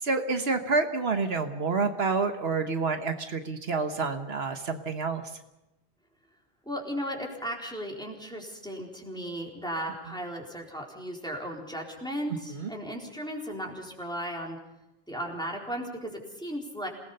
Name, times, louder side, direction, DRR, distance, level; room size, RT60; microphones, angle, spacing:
voice 1, 0.0-5.2 12.5-12.7, right 4 dB, 75° right, 7 dB, 1.5 m, -28 dB
voice 2, 6.7-14.6 15.1-16.9, equal, 5° left, -1 dB, 4.1 m, -36 dB
27.5 x 19.0 x 5.5 m, 0.93 s
omnidirectional pair, 1.1 m